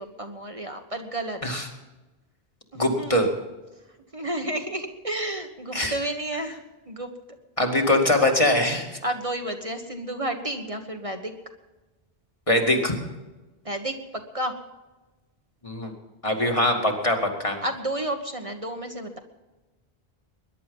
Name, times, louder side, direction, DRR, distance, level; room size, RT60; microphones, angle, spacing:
voice 1, 0.0-1.4 2.7-3.2 4.1-6.6 6.9-7.1 9.0-11.3 13.6-14.0 14.3-14.5 17.6-19.2, right 1 dB, 35° right, 5 dB, 1.4 m, -31 dB
voice 2, 2.7-3.3 5.7-5.9 7.6-9.0 12.5-13.0 15.6-15.9 16.2-17.6, left 1 dB, 30° left, 2 dB, 2.4 m, -22 dB
22.0 x 11.0 x 5.4 m, 1.1 s
omnidirectional pair, 1.0 m